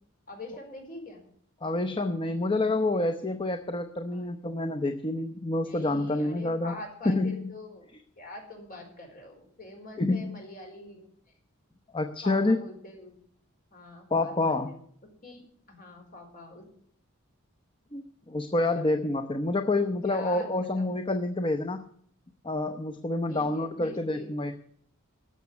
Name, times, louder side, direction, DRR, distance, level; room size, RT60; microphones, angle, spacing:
voice 1, 0.3-1.2 4.1-4.7 5.6-7.9 8.2-11.1 12.2-13.2 13.7-14.8 15.2-15.4 15.7-16.7 18.7-18.9 20.0-20.7 23.3-24.3, left 2 dB, 45° left, 2 dB, 4.4 m, -44 dB
voice 2, 1.6-6.7 7.0-7.5 10.0-10.4 11.9-12.6 14.1-14.7 17.9-21.8 22.4-24.5, left 2 dB, 25° left, 6 dB, 0.7 m, -28 dB
13.0 x 7.2 x 9.5 m, 0.62 s
head